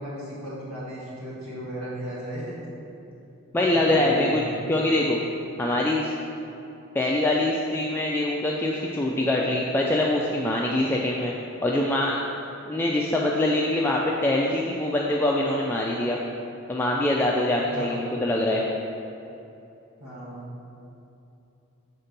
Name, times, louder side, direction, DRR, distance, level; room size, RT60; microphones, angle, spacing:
voice 1, 0.0-2.6 3.6-4.6 17.7-18.0 20.0-20.5, equal, 80° right, -8 dB, 1.6 m, -36 dB
voice 2, 3.5-5.2 5.6-6.1 6.9-11.3 11.6-12.1 12.7-16.2 16.7-18.6, left 1 dB, 10° left, -3 dB, 0.3 m, -24 dB
6.6 x 4.3 x 5.2 m, 2.8 s
head